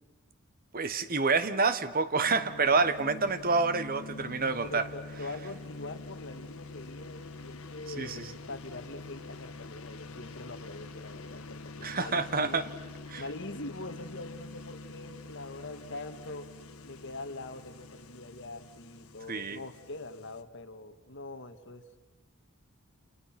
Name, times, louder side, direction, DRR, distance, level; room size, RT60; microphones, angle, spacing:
voice 1, 0.7-4.9 8.0-8.3 11.8-12.7 13.1-13.2 19.3-19.6, right 4 dB, 40° right, 12 dB, 1.2 m, -28 dB
sound 1, 2.2-20.4, left 3 dB, 85° left, 1.4 m, -46 dB
voice 2, 4.6-12.8 13.2-16.5 16.8-21.8, left 2 dB, 55° left, 6 dB, 1.8 m, -43 dB
29.5 x 28.0 x 6.0 m, 1.3 s
head